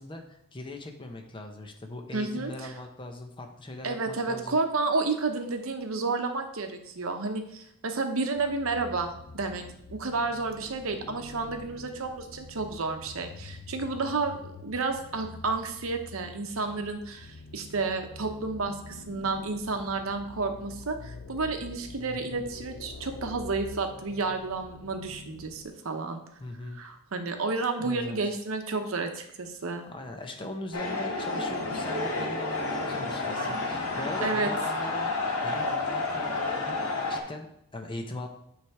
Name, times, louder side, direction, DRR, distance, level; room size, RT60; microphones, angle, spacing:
voice 1, 0.0-4.6 26.4-26.8 27.8-28.2 29.9-35.1 35.4-38.3, left 2 dB, 25° left, 4 dB, 0.8 m, -40 dB
voice 2, 2.1-2.7 3.8-9.6 9.9-26.2 26.7-29.9 33.9-34.5, right 3 dB, 70° right, 5 dB, 0.8 m, -31 dB
sound 1, 8.3-25.7, left 3 dB, 60° left, 0.6 m, -46 dB
sound 2, 30.7-37.2, left 3 dB, 85° left, 1.6 m, -30 dB
9.0 x 3.4 x 4.7 m, 0.77 s
head